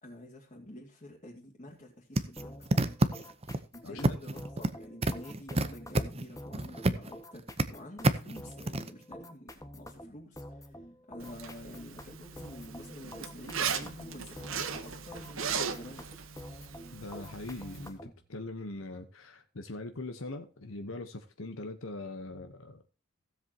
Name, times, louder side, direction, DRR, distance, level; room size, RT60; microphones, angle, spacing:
voice 1, 0.0-2.6 3.7-10.8 11.1-16.1, left 1 dB, 35° left, 2.4 m, -48 dB
sound 1, 2.2-3.6 4.0-4.7 5.0-7.1 7.4-7.6 8.0-8.9, right 1 dB, 30° right, 0.8 m, -27 dB
sound 2, 2.4-18.2, left 1 dB, 15° left, 1.5 m, -48 dB
voice 2, 3.8-4.2 16.9-22.8, left 2 dB, 75° left, 1.1 m, -41 dB
Zipper (clothing), 11.2-17.9, right 6 dB, 70° right, 1.3 m, -38 dB
16.5 x 7.7 x 2.9 m
head